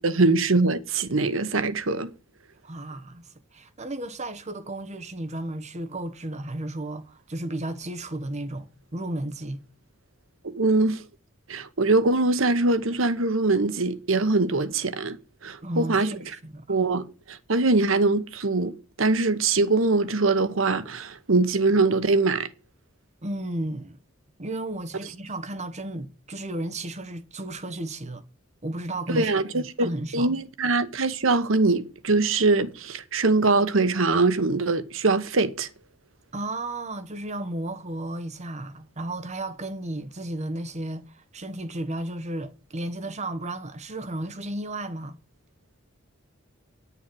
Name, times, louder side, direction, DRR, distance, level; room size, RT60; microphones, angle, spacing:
voice 1, 0.0-2.1 10.4-11.0 11.5-15.2 15.4-16.1 16.7-18.7 19.0-22.5 29.1-35.7, right 3 dB, 75° right, 1.0 m, -23 dB
voice 2, 2.6-9.6 15.6-16.8 23.2-24.0 24.4-28.2 28.6-30.3 36.3-45.2, right 1 dB, 35° right, 1.1 m, -33 dB
10.0 x 7.0 x 7.7 m
head